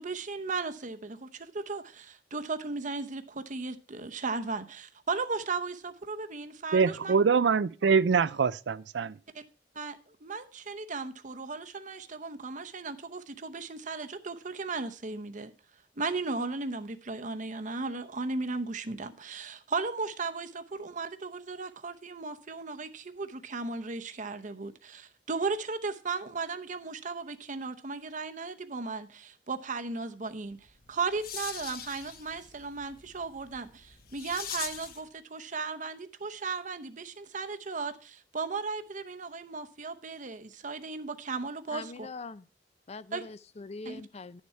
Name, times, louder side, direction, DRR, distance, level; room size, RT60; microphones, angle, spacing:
voice 1, 0.0-7.2 9.3-9.4 9.7-15.5 16.0-30.6 30.9-42.1 43.1-43.2 43.8-44.0, right 4 dB, 45° right, 0.8 m, -36 dB
voice 2, 6.7-9.1, right 5 dB, 75° right, 0.4 m, -24 dB
sound 1, 30.7-35.1, left 8 dB, 55° left, 1.2 m, -42 dB
voice 3, 41.7-42.5 42.9-44.4, left 3 dB, 35° left, 0.5 m, -42 dB
11.0 x 7.3 x 4.6 m
head